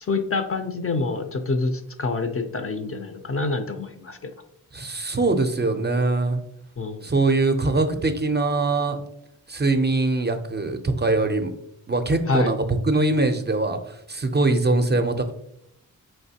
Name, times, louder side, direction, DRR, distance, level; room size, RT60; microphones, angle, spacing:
voice 1, 0.0-4.3 6.8-7.1 12.3-12.5, left 3 dB, 40° left, 7 dB, 0.5 m, -26 dB
voice 2, 4.7-6.4 7.0-9.0 9.5-11.5 11.9-15.3, right 2 dB, 30° right, 7 dB, 0.5 m, -22 dB
4.3 x 3.2 x 2.7 m, 0.75 s
cardioid pair, 50°, 37 cm